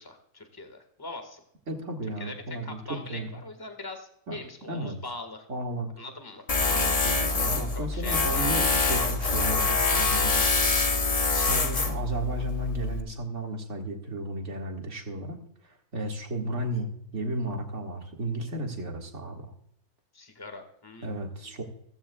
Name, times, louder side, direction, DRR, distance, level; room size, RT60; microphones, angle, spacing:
voice 1, 0.0-1.4 2.2-5.5 6.0-6.5 7.7-8.5 20.1-21.6, left 2 dB, 15° left, 6 dB, 1.7 m, -42 dB
voice 2, 1.7-3.3 4.3-4.4 4.7-5.0 5.5-5.9 6.7-10.4 11.3-15.4 15.7-19.5 21.0-21.6, right 1 dB, 45° right, 1 dB, 2.2 m, -34 dB
Tools, 6.5-13.0, left 3 dB, 30° left, 0.8 m, -25 dB
16.0 x 14.5 x 2.3 m, 0.72 s
omnidirectional pair, 1.7 m